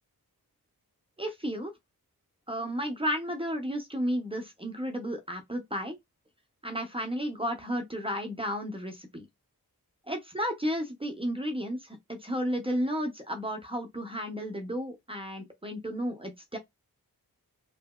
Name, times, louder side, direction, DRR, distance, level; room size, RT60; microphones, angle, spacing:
voice 1, 1.2-1.7 2.5-6.0 6.6-9.3 10.1-16.6, equal, 15° right, 0.6 m, -33 dB
2.8 x 2.6 x 2.2 m
wide cardioid pair, 80°, 38 cm